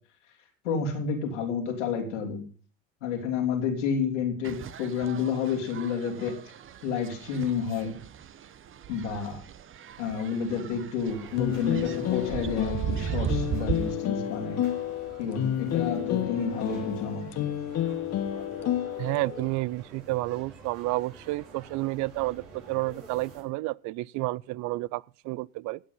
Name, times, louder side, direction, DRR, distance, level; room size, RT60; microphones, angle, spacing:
voice 1, 0.6-2.4 3.0-6.4 6.8-8.0 8.9-9.4 10.0-14.6 15.2-17.5, left 6 dB, 85° left, 3.4 m, -30 dB
sound 1, 4.4-13.9, right 9 dB, 35° right, 0.9 m, -37 dB
sound 2, 11.1-23.4, right 3 dB, 80° right, 3.4 m, -48 dB
sound 3, 11.4-19.5, left 11 dB, 45° left, 1.3 m, -30 dB
voice 2, 19.0-25.8, right 21 dB, 55° right, 0.5 m, -30 dB
16.5 x 7.4 x 5.5 m
hypercardioid pair, 80°, 35 cm